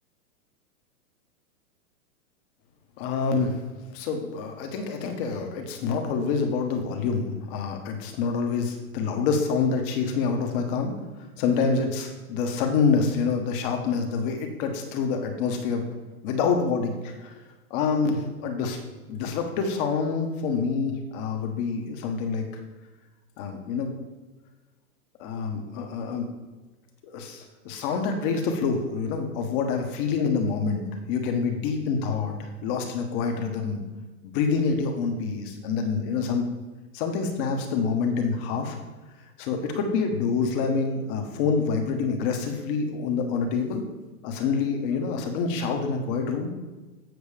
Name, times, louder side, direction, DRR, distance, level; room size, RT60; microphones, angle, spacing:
voice 1, 3.0-3.6 3.9-10.9 11.2-15.8 16.2-17.3 17.7-18.8 19.1-22.5 23.4-23.9 25.2-26.3 27.0-33.8 34.2-36.5 36.9-38.8 39.4-43.8 44.2-46.5, left 5 dB, 35° left, 4 dB, 1.4 m, -27 dB
8.1 x 5.9 x 5.1 m, 1.2 s
hypercardioid pair, 145°, 45 cm